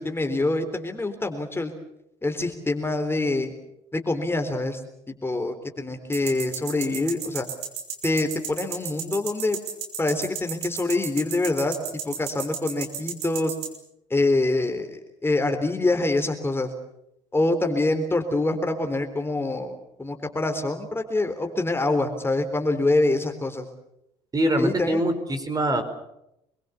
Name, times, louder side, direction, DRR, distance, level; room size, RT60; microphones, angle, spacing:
voice 1, 0.0-1.7 2.2-3.5 3.9-4.8 5.1-7.5 8.0-9.6 10.0-13.5 14.1-16.7 17.3-23.7 24.6-25.0, left 2 dB, 15° left, 6 dB, 3.7 m, -25 dB
sound 1, 6.1-13.7, right 8 dB, 70° right, 4.5 m, -32 dB
voice 2, 24.3-25.8, right 1 dB, 25° right, 8 dB, 4.8 m, -23 dB
26.0 x 22.5 x 7.2 m, 0.82 s
figure-of-eight pair, 55°, 14 cm